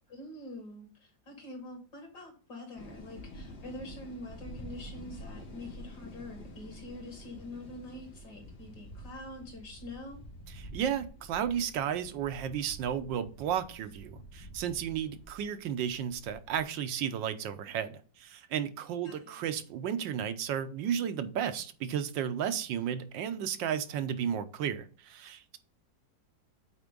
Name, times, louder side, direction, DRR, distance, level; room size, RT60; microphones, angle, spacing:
voice 1, 0.1-10.2 19.0-19.4, left 1 dB, 65° left, 3 dB, 2.7 m, -45 dB
sound 1, 2.8-16.6, equal, 85° left, 2.5 m, -48 dB
voice 2, 10.6-25.6, right 9 dB, 80° right, 10 dB, 1.5 m, -33 dB
8.1 x 4.4 x 3.8 m, 0.39 s
omnidirectional pair, 2.0 m